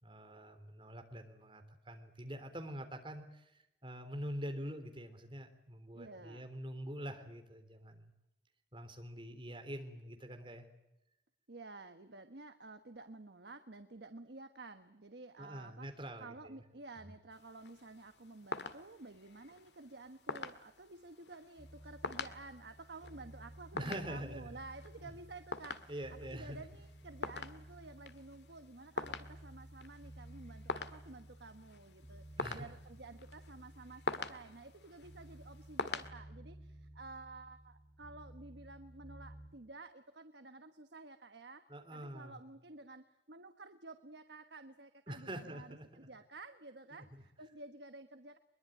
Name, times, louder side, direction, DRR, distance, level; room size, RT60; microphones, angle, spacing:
voice 1, 0.0-8.1 8.7-10.7 15.4-16.6 17.0-17.1 23.7-24.5 25.0-25.1 25.9-26.6 32.4-32.7 41.7-42.4 45.1-46.1 46.9-47.2, equal, 30° right, 6 dB, 3.5 m, -45 dB
voice 2, 5.9-6.5 11.5-15.9 16.2-48.4, right 2 dB, 75° right, 8 dB, 1.3 m, -52 dB
sound 1, 17.3-36.1, left 3 dB, 75° left, 1.9 m, -46 dB
sound 2, 21.6-39.5, right 1 dB, 15° left, 6.5 m, -55 dB
23.0 x 22.5 x 9.1 m, 0.89 s
head